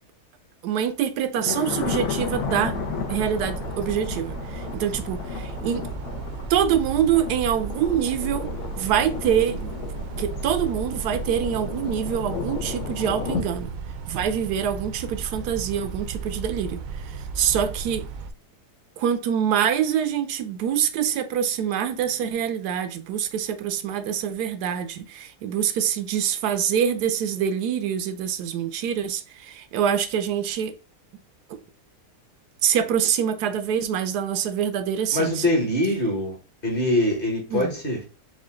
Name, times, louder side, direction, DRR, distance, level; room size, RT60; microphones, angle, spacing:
voice 1, 0.6-2.8 3.1-5.9 6.5-9.8 10.2-13.7 14.1-18.1 19.0-30.7 31.5-31.6 32.6-35.4 37.5-37.7, right 9 dB, 85° right, 1.1 m, -25 dB
Thunder, 1.3-13.4, left 6 dB, 75° left, 1.3 m, -33 dB
sound 1, 1.7-18.3, right 4 dB, 70° right, 0.9 m, -35 dB
voice 2, 35.1-36.4 36.6-38.0, left 1 dB, 35° left, 1.3 m, -23 dB
4.8 x 2.4 x 3.5 m
omnidirectional pair, 1.7 m